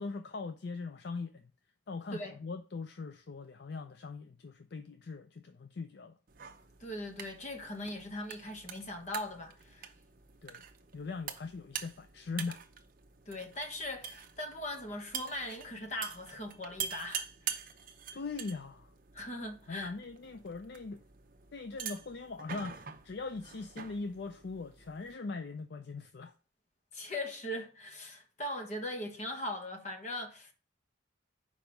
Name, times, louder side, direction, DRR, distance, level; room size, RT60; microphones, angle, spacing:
voice 1, 0.0-1.5 1.9-6.2 10.4-10.6 10.9-12.6 18.1-18.9 19.7-21.0 21.5-26.3, left 4 dB, 55° left, 0.4 m, -41 dB
sound 1, 6.3-25.1, right 8 dB, 45° right, 0.7 m, -45 dB
voice 2, 6.8-9.9 13.3-17.6 19.1-19.9 26.9-30.5, left 1 dB, 35° left, 1.3 m, -40 dB
5.2 x 4.9 x 5.8 m
head